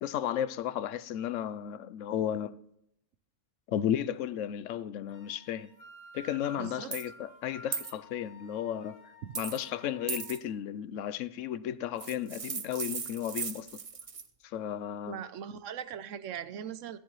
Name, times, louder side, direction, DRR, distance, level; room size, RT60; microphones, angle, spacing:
voice 1, 0.0-2.6 3.7-5.7 6.1-13.7 14.4-15.2, left 10 dB, 85° left, 1.0 m, -34 dB
sound 1, 5.1-10.4, left 1 dB, 25° left, 1.9 m, -53 dB
voice 2, 6.6-6.9 9.2-9.3 15.1-17.0, right 9 dB, 85° right, 1.0 m, -40 dB
sound 2, 6.9-7.1 7.7-7.9 9.3-9.7 10.1-10.4 12.0-14.3, right 6 dB, 40° right, 0.5 m, -37 dB
14.5 x 10.5 x 3.2 m
omnidirectional pair, 1.3 m